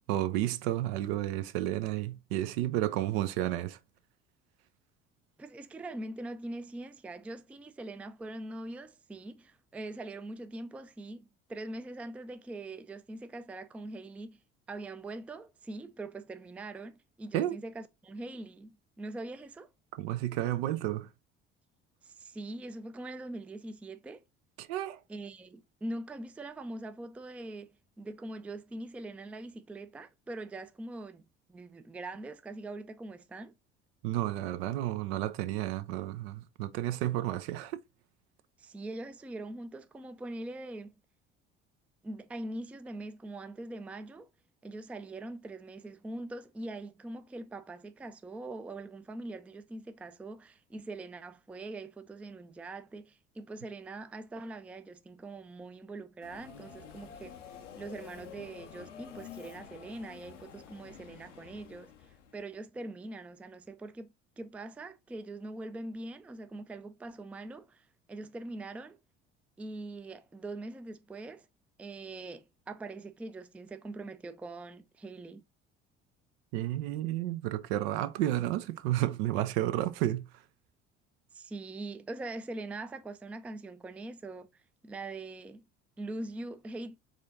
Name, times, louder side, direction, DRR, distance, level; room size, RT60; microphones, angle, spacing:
voice 1, 0.1-3.8 17.3-17.6 20.0-21.1 24.6-25.0 34.0-37.8 76.5-80.3, right 14 dB, 60° right, 0.6 m, -31 dB
voice 2, 5.4-14.4 14.7-19.7 22.0-24.2 25.1-27.7 28.0-33.6 38.6-40.9 42.0-44.3 44.6-57.4 57.8-61.9 62.3-64.1 64.4-69.0 69.6-71.5 71.8-75.4 81.3-85.7 86.0-87.0, right 2 dB, 5° right, 0.4 m, -42 dB
Subway metro underground, 56.2-62.4, left 7 dB, 85° left, 0.6 m, -49 dB
4.9 x 3.8 x 2.6 m
figure-of-eight pair, 55°, 36 cm